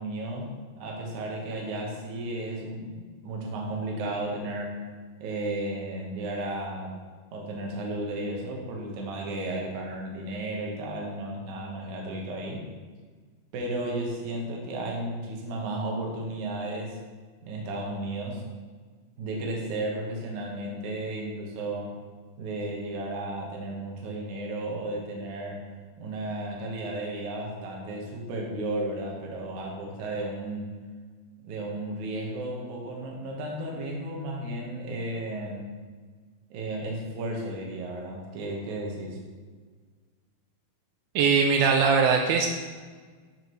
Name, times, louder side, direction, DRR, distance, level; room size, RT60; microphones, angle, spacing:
voice 1, 0.0-3.0 3.2-4.8 5.2-7.0 7.3-12.6 13.5-17.0 17.4-18.4 19.2-22.0 22.4-25.7 26.0-30.7 31.4-35.7 36.5-39.2, right 1 dB, 60° right, -1 dB, 2.4 m, -34 dB
voice 2, 41.2-42.5, right 5 dB, 85° right, 3 dB, 2.5 m, -21 dB
12.5 x 4.8 x 3.1 m, 1.5 s
omnidirectional pair, 4.4 m